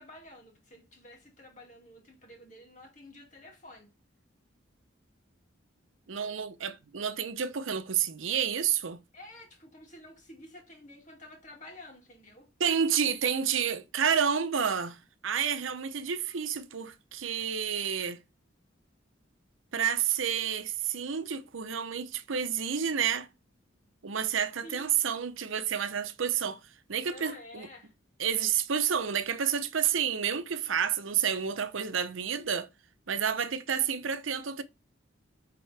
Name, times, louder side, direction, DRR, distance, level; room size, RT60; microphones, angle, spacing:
voice 1, 0.0-3.9 9.1-12.5 24.6-25.0 27.0-27.9, left 1 dB, 40° left, 2.2 m, -50 dB
voice 2, 6.1-9.0 12.6-18.2 19.7-23.3 24.0-26.6 26.9-27.7 28.2-32.7 33.1-34.6, right 7 dB, 80° right, 0.7 m, -30 dB
8.9 x 3.8 x 3.3 m
head